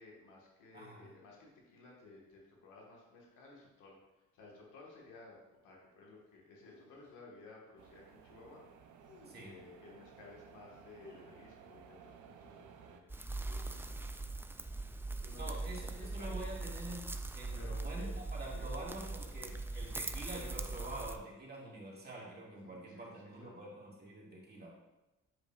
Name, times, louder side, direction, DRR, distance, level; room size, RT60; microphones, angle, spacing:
voice 1, 0.0-5.4 5.6-9.0 9.3-13.1 13.4-13.9 15.2-15.6 16.0-16.4 17.5-18.2 18.5-18.7 22.5-23.6, left 3 dB, 90° left, -3 dB, 1.6 m, -56 dB
voice 2, 0.7-1.1 9.3-9.5 12.9-13.0 15.3-24.7, right 2 dB, 35° right, -4 dB, 1.9 m, -47 dB
sound 1, 6.6-7.1 9.0-9.6 11.0-11.8 13.3-14.3 15.1-16.3 17.7-18.2 19.0-19.3 20.5-21.1 22.3-22.6, left 3 dB, 75° left, 1.5 m, -62 dB
sound 2, 7.8-13.0, right 7 dB, 90° right, 0.6 m, -57 dB
sound 3, 13.1-21.2, right 2 dB, 10° right, 0.3 m, -41 dB
8.1 x 5.1 x 2.4 m, 1.0 s
cardioid pair, 90°, 30 cm